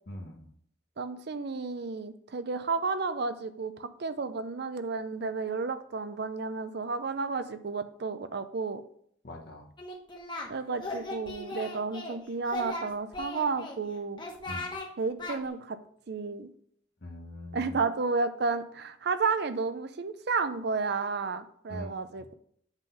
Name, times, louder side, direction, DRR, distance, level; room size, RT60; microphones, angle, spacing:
voice 1, 0.1-0.5 9.2-9.7 14.5-14.6 17.0-17.8 21.7-22.0, left 1 dB, 50° left, 3 dB, 1.1 m, -42 dB
voice 2, 1.0-8.8 10.5-14.2 15.0-15.8 16.1-16.5 17.5-22.3, right 4 dB, 50° right, 11 dB, 0.5 m, -32 dB
Singing, 9.8-10.5 10.8-12.2 12.5-13.8 14.2-14.9 15.2-15.4, left 2 dB, 20° left, 1.1 m, -37 dB
8.0 x 3.8 x 5.4 m, 0.66 s
head